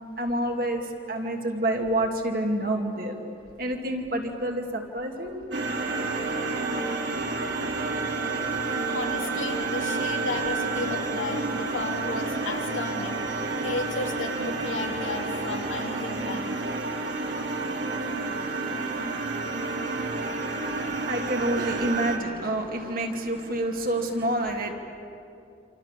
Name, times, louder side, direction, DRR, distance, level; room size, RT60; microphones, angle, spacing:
voice 1, 0.2-3.2 3.6-5.5 8.6-8.9 20.6-24.7, right 1 dB, 45° right, 2 dB, 2.6 m, -28 dB
sound 1, 5.5-22.2, right 3 dB, 65° right, 3.1 m, -30 dB
voice 2, 8.9-13.2 13.5-16.6, left 3 dB, 90° left, 2 dB, 3.0 m, -34 dB
27.5 x 27.0 x 7.5 m, 2.7 s
head